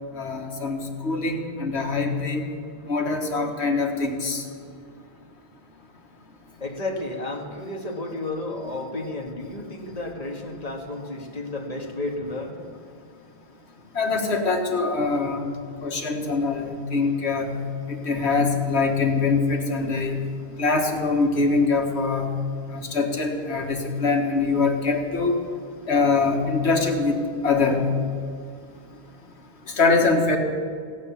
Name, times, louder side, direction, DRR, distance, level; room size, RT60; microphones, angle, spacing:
voice 1, 0.2-2.5 2.9-4.4 14.0-15.5 15.8-17.6 17.9-20.2 20.6-22.3 22.7-25.3 25.9-27.2 27.4-27.8 29.8-30.4, left 4 dB, 85° left, 3 dB, 1.8 m, -23 dB
voice 2, 6.6-12.6, left 2 dB, 35° left, 1 dB, 1.8 m, -32 dB
16.5 x 9.8 x 7.1 m, 2.3 s
omnidirectional pair, 1.1 m